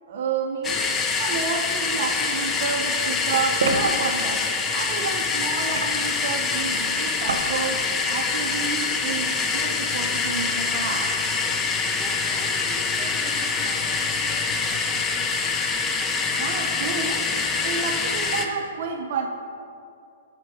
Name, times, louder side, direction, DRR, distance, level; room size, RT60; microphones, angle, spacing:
voice 1, 0.1-0.9 1.2-11.2 16.4-17.3 17.6-19.3, right 5 dB, 55° right, 4 dB, 0.6 m, -30 dB
sound 1, 0.6-18.5, left 4 dB, 20° left, 0.7 m, -25 dB
sound 2, 3.6-3.8 5.7-6.2 7.3-7.5 8.0-8.3 9.1-9.2, right 3 dB, 70° right, 1.1 m, -27 dB
voice 2, 12.0-15.3, right 1 dB, 10° right, -2 dB, 1.6 m, -42 dB
11.0 x 4.4 x 4.7 m, 2.5 s
hypercardioid pair, 120°, 0 cm